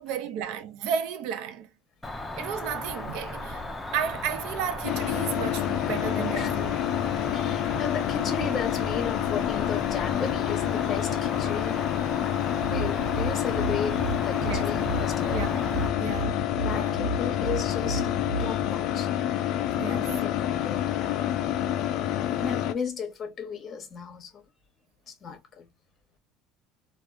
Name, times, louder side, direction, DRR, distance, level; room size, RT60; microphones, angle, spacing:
voice 1, 0.0-1.7 2.4-3.6 3.9-6.7 14.4-14.7 15.3-15.7 16.0-16.4 16.7-17.0 19.8-20.1, right 8 dB, 70° right, 0.5 m, -33 dB
Cricket, 2.0-15.9, left 2 dB, 10° left, 0.6 m, -36 dB
sound 1, 4.8-22.7, left 12 dB, 55° left, 0.4 m, -28 dB
voice 2, 7.2-11.8 12.7-15.5 16.5-18.1 18.4-19.1 19.8-21.2 22.4-24.4 25.1-25.7, left 6 dB, 30° left, 1.0 m, -35 dB
sound 2, 12.5-19.0, right 3 dB, 50° right, 1.1 m, -34 dB
3.3 x 2.4 x 2.5 m
cardioid pair, 135°, 0 cm